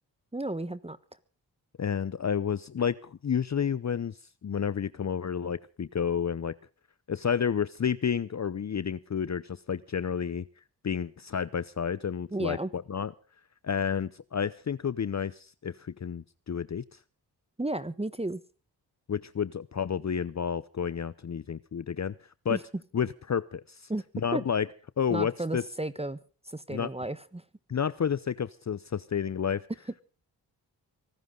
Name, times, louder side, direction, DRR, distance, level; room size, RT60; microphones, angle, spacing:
voice 1, 0.3-1.0 12.3-12.7 17.6-18.4 22.5-22.6 23.9-24.0 24.3-24.4 25.1-26.2 26.5-27.4, right 2 dB, 15° right, 15 dB, 1.2 m, -33 dB
voice 2, 1.8-4.2 4.4-6.5 7.1-10.4 10.8-13.1 13.6-17.0 19.1-22.1 22.4-22.6 22.9-23.9 24.1-24.7 25.0-25.6 26.7-26.9 27.7-29.6, left 7 dB, 40° left, 18 dB, 0.8 m, -30 dB
24.5 x 13.5 x 3.9 m, 0.38 s
supercardioid pair, 45°, 43 cm